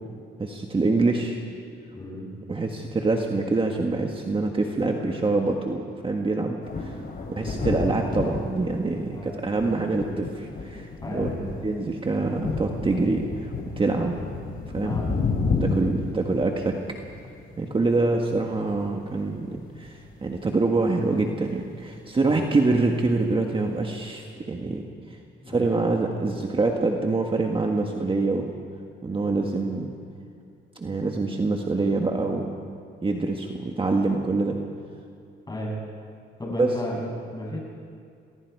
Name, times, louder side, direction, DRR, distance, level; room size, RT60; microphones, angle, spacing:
voice 1, 0.4-1.4 2.5-6.9 7.3-11.3 11.6-14.3 14.7-15.0 15.6-16.8 17.6-24.8 25.1-25.2 25.5-28.5 29.0-29.9 30.7-32.5 33.0-34.6 36.6-36.7, right 3 dB, 25° right, 2 dB, 1.6 m, -25 dB
voice 2, 1.9-2.3 5.0-5.2 7.2-7.6 9.1-9.3 11.0-11.5 14.8-15.1 15.5-15.9 22.2-22.5 25.4-25.7 29.2-29.6 35.5-35.7 36.4-37.6, left 1 dB, 20° left, -2 dB, 7.8 m, -34 dB
sound 1, 6.6-18.0 18.4-18.9 19.6-19.7 20.0-20.4, left 3 dB, 50° left, 3.6 m, -31 dB
27.5 x 20.5 x 4.8 m, 2.3 s
cardioid pair, 90°, 20 cm